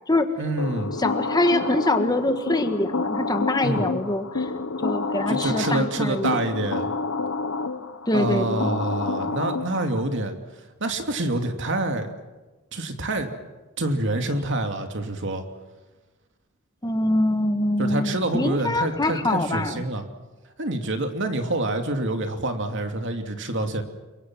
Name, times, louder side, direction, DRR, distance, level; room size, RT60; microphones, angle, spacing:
voice 1, 0.4-0.9 3.6-3.8 5.3-6.9 8.1-10.3 10.8-12.1 12.7-13.3 13.8-15.4 17.8-20.0 20.6-23.8, right 2 dB, 60° right, 5 dB, 2.7 m, -27 dB
sound 1, 0.6-10.0, left 3 dB, 80° left, 1.2 m, -29 dB
voice 2, 1.0-4.5 4.8-6.3 8.0-8.7 16.8-19.8, left 1 dB, 20° left, 8 dB, 1.6 m, -24 dB
29.0 x 23.5 x 6.3 m, 1.2 s
head